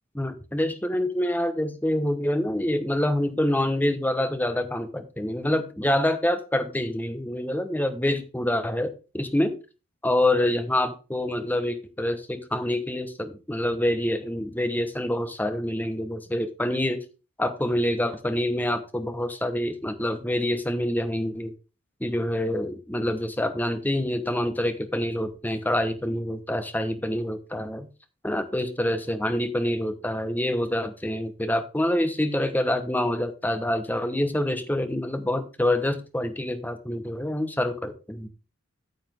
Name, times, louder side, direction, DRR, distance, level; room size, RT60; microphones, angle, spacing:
voice 1, 0.1-9.6 10.0-17.0 17.4-21.5 22.0-27.9 28.2-38.3, left 1 dB, 10° left, 9 dB, 1.0 m, -26 dB
9.3 x 7.4 x 3.6 m, 0.31 s
head